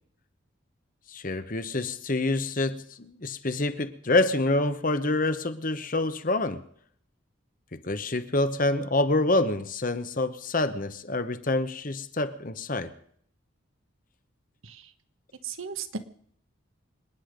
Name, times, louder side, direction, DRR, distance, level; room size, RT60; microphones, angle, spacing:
voice 1, 1.1-6.6 7.7-12.9, left 2 dB, 40° left, 11 dB, 1.0 m, -27 dB
voice 2, 15.4-16.0, right 6 dB, 75° right, 10 dB, 1.3 m, -36 dB
26.0 x 10.0 x 5.2 m, 0.63 s
head